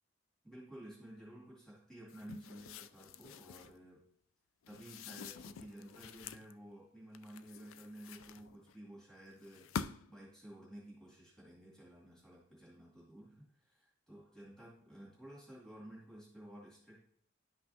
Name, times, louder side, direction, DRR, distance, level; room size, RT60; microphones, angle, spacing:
voice 1, 0.4-4.0 4.7-9.8 10.1-17.0, right 1 dB, 5° left, -8 dB, 2.5 m, -53 dB
sound 1, 2.1-3.8 4.6-6.5 7.1-8.7 9.4-10.2, left 6 dB, 90° left, 0.3 m, -47 dB
11.5 x 5.6 x 2.8 m, 0.67 s
head